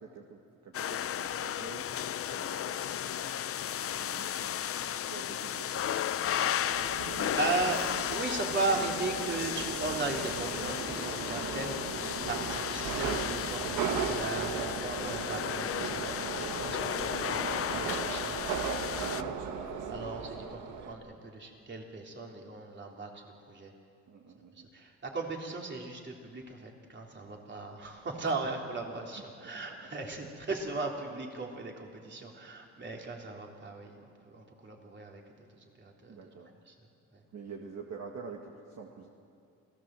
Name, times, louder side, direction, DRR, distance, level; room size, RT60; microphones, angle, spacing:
voice 1, 0.0-1.9 2.3-3.5 3.9-4.6 4.9-6.5 7.0-7.4 13.4-13.9 19.7-20.0 24.1-24.7 29.4-29.9 30.2-30.3 36.1-36.5 37.3-39.1, right 5 dB, 60° right, 1 dB, 1.9 m, -48 dB
sound 1, 0.7-19.2, left 10 dB, 50° left, 0.6 m, -34 dB
Subway metro underground, 6.6-20.9, right 6 dB, 85° right, 1.7 m, -37 dB
voice 2, 7.4-7.8 8.1-18.4 18.9-19.3 19.9-23.7 24.6-36.2 36.7-36.8 37.1-37.2, right 3 dB, 35° right, 0 dB, 3.5 m, -37 dB
28.0 x 17.0 x 7.7 m, 2.5 s
cardioid pair, 90°, 30 cm